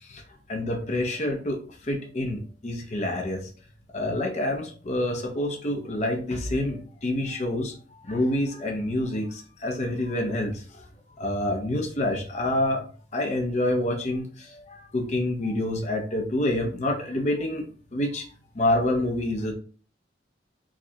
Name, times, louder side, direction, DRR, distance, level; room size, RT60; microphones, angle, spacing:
voice 1, 0.5-1.6 1.8-3.4 3.9-7.7 8.0-10.8 11.2-12.8 13.1-17.6 17.9-18.2 18.5-19.5, left 1 dB, 40° left, 2 dB, 0.6 m, -27 dB
4.8 x 2.2 x 2.8 m, 0.40 s
head